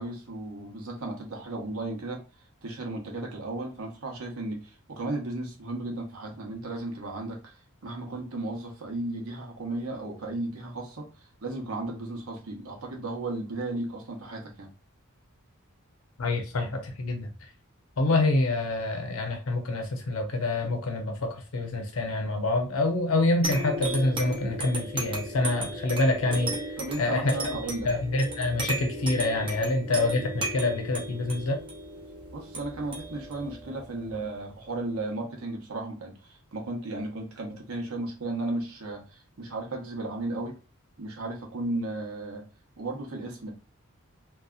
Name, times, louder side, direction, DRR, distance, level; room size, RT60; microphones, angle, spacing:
voice 1, 0.0-2.2 2.6-4.6 4.9-7.5 7.8-11.1 11.4-14.7 26.8-27.9 32.3-36.1 36.5-39.0 39.4-40.5 41.0-42.4 42.8-43.5, right 2 dB, 75° right, 0.8 m, -34 dB
voice 2, 16.2-17.3 18.0-26.5 27.0-27.6 27.8-31.6, left 2 dB, 75° left, 0.7 m, -26 dB
sound 1, 23.4-34.5, right 1 dB, 25° right, 0.6 m, -36 dB
2.6 x 2.3 x 2.3 m
head